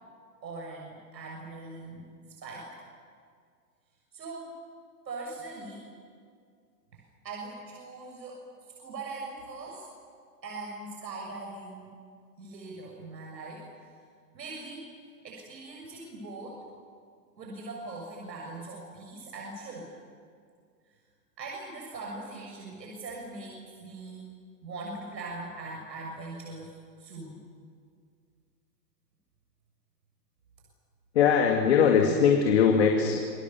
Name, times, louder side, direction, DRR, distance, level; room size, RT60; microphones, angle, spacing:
voice 1, 0.4-2.1 2.4-2.7 4.1-4.6 5.1-5.9 6.9-8.4 8.8-9.9 10.4-11.9 12.4-13.9 14.3-14.9 15.2-16.6 17.4-19.9 21.4-24.4 24.6-27.4, right 3 dB, 90° right, -1 dB, 7.0 m, -41 dB
voice 2, 31.1-33.2, left 6 dB, 40° left, 2 dB, 2.4 m, -21 dB
28.0 x 23.5 x 7.2 m, 2.2 s
hypercardioid pair, 180°, 50 cm